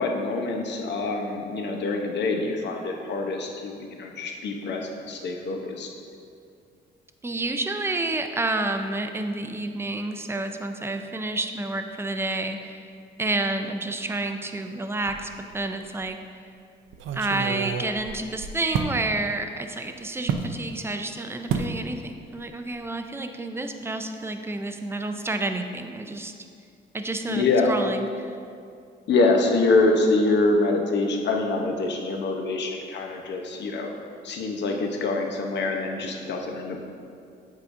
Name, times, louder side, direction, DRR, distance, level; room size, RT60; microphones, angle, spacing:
voice 1, 0.0-5.9 27.3-27.7 29.1-33.9 34.2-36.8, left 3 dB, 60° left, 2 dB, 0.8 m, -25 dB
voice 2, 7.2-12.9 13.2-16.2 17.1-26.3 26.9-28.4, right 2 dB, 10° right, 6 dB, 0.4 m, -29 dB
sound 1, 15.1-15.7 16.0-16.1 16.9-19.0 20.3-20.5 21.5-21.8 22.1-22.4 22.7-22.9, right 6 dB, 80° right, 0.5 m, -30 dB
8.3 x 4.9 x 2.6 m, 2.3 s
cardioid pair, 90°, 20 cm